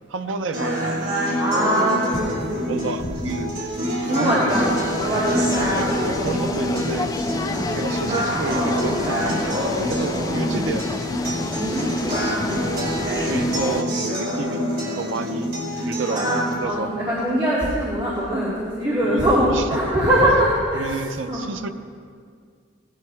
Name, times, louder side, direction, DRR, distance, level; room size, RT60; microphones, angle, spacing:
voice 1, 0.1-1.1 2.5-3.6 4.2-4.8 6.0-7.2 7.6-11.1 12.1-12.4 13.0-15.6 15.8-16.9 19.0-19.6 20.2-20.4 20.7-21.7, right 3 dB, 75° right, 8 dB, 0.6 m, -31 dB
sound 1, 0.5-16.5, equal, 45° right, 3.9 m, -26 dB
voice 2, 1.4-2.7 4.0-4.7 5.0-5.9 7.4-7.7 10.3-10.7 11.5-12.5 15.1-15.2 16.1-21.0 21.3-21.4, right 1 dB, 25° right, -9 dB, 2.6 m, -23 dB
sound 2, 4.5-13.8, left 2 dB, 20° left, 0.3 m, -29 dB
18.5 x 11.5 x 3.4 m, 2.1 s
head